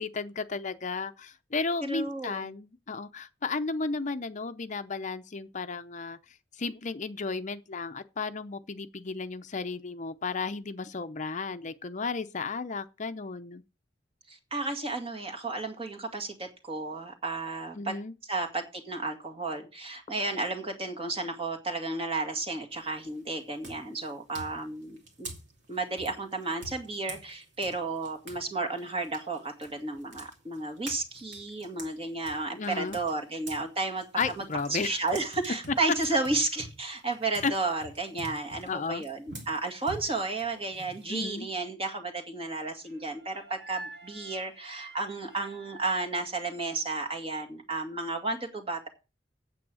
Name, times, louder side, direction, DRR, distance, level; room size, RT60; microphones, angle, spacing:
voice 1, 0.0-6.2 6.6-13.6 17.7-18.1 32.6-33.0 34.2-35.0 37.4-37.5 38.7-39.0 41.1-41.5, left 4 dB, 45° left, 0.7 m, -33 dB
voice 2, 1.8-2.5 14.3-17.9 18.3-25.3 25.7-34.4 34.7-48.9, right 3 dB, 30° right, 2.1 m, -33 dB
sound 1, 22.7-23.1 23.6-28.4 28.8-33.7 34.0-41.4, right 2 dB, 70° right, 2.9 m, -46 dB
sound 2, 42.8-47.1, right 2 dB, 90° right, 2.3 m, -48 dB
8.8 x 7.8 x 6.3 m
head